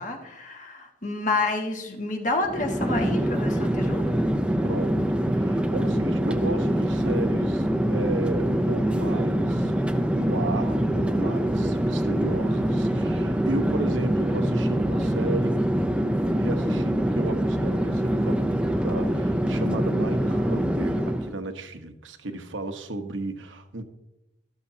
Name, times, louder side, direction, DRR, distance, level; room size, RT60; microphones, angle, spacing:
voice 1, 0.0-4.0, left 2 dB, 40° left, 1.8 m, -29 dB
Chatter / Fixed-wing aircraft airplane, 2.4-21.4, right 1 dB, 5° right, 0.6 m, -24 dB
voice 2, 4.6-9.7 10.1-15.6 16.4-23.8, right 2 dB, 80° right, 1.1 m, -34 dB
14.0 x 12.5 x 2.8 m
head